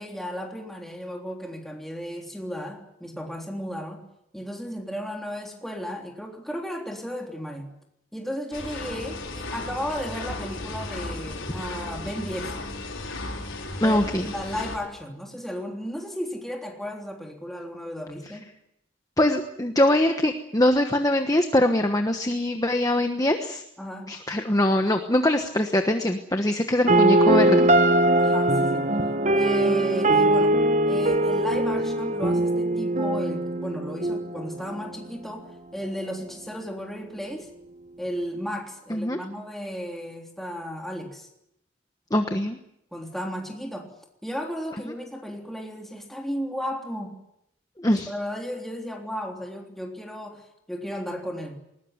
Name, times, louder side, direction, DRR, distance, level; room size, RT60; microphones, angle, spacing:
voice 1, 0.0-4.0 4.3-7.7 8.1-12.6 13.8-14.0 14.3-18.5 23.8-24.1 28.2-28.9 29.3-30.6 30.9-37.5 38.0-41.3 42.9-43.9 44.2-47.2 47.9-51.6, equal, ahead, 1 dB, 3.5 m, -34 dB
sound 1, 8.5-14.8, left 2 dB, 70° left, 5.1 m, -35 dB
voice 2, 13.8-14.3 19.2-23.6 24.1-27.7 38.9-39.2 42.1-42.6 47.8-48.1, left 1 dB, 15° left, 6 dB, 1.2 m, -23 dB
sound 2, 26.9-34.9, right 1 dB, 35° right, 1.0 m, -21 dB
20.5 x 20.0 x 9.6 m, 0.80 s
head